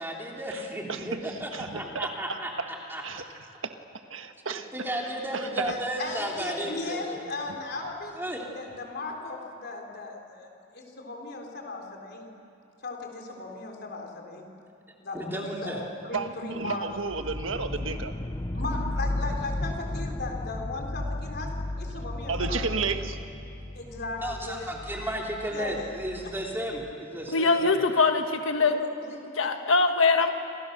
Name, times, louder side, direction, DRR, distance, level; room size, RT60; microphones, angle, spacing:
voice 1, 0.0-2.5 2.9-3.2 4.7-7.2 8.1-8.4 10.9-11.0 15.1-15.8 24.2-27.8, right 1 dB, 10° right, -1 dB, 3.2 m, -34 dB
voice 2, 1.5-2.4 3.0-3.2 3.6-3.7 4.1-4.7 5.3-5.7 16.1-18.1 22.3-23.2, right 4 dB, 75° right, 7 dB, 1.5 m, -32 dB
voice 3, 5.7-8.2 8.5-12.3 12.8-14.5 15.0-16.9 18.5-23.0 23.8-24.7 25.5-25.8 28.6-28.7 29.0-29.5, left 3 dB, 55° left, 2 dB, 4.0 m, -37 dB
sound 1, 17.1-26.9, left 1 dB, 20° left, 0.6 m, -34 dB
voice 4, 27.3-28.8 29.4-30.3, left 4 dB, 80° left, 6 dB, 1.4 m, -22 dB
27.5 x 26.5 x 6.7 m, 2.7 s
head